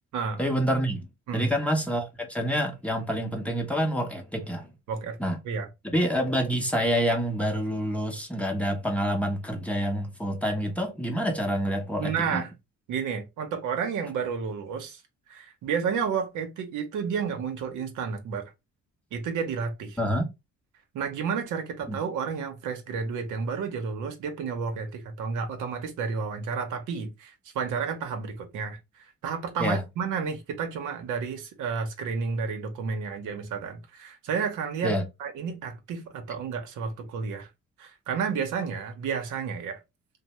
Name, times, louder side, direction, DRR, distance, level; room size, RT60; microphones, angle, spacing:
voice 1, 0.4-1.1 1.3-4.7 5.2-5.4 5.9-12.4 20.0-20.3 21.9-22.0 29.6-29.8 34.8-35.0, equal, 5° left, 0.7 m, -27 dB
voice 2, 4.9-5.2 5.4-5.7 12.0-12.5 12.9-15.0 15.3-18.5 19.1-20.0 20.9-37.5 37.8-39.8, right 6 dB, 80° right, 0.7 m, -31 dB
2.6 x 2.0 x 3.0 m
cardioid pair, 90°, 30 cm